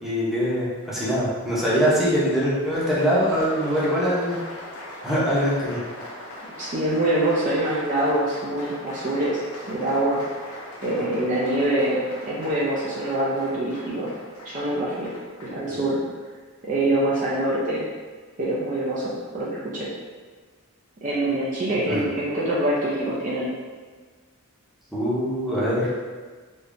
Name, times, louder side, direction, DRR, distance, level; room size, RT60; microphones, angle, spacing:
voice 1, 0.0-4.4 5.0-5.8 15.7-15.8 21.9-22.0 24.9-25.9, equal, ahead, -9 dB, 0.8 m, -23 dB
Applause, 2.4-15.6, left 1 dB, 90° left, 0.8 m, -40 dB
voice 2, 6.6-9.4 9.7-10.2 10.8-14.1 14.4-15.1 15.4-16.0 16.6-17.8 18.4-19.9 21.0-23.5, right 1 dB, 35° right, -7 dB, 0.5 m, -24 dB
3.5 x 2.7 x 2.5 m, 1.5 s
head